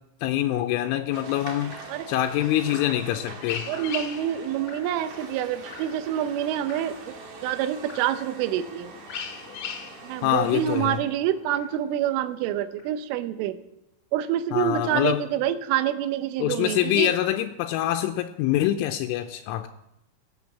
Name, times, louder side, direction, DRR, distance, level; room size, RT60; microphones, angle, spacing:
voice 1, 0.2-1.7 2.1-3.7 10.2-11.0 14.5-15.2 16.4-19.7, left 13 dB, 85° left, 3.1 m, -25 dB
sound 1, 1.1-11.0, right 5 dB, 55° right, 2.5 m, -43 dB
sound 2, 1.6-12.6, left 7 dB, 65° left, 2.8 m, -42 dB
Drip, 1.7-2.0 2.7-3.1 3.7-4.1 4.7-5.0 5.7-6.1 6.7-7.1 7.9-8.2 9.1-9.4 10.3-10.6 11.5-11.9 12.8-13.0, left 5 dB, 45° left, 1.9 m, -46 dB
voice 2, 3.7-7.2 7.4-8.9 10.0-13.6 14.1-17.1, right 11 dB, 85° right, 3.4 m, -27 dB
17.0 x 8.5 x 7.3 m
omnidirectional pair, 5.6 m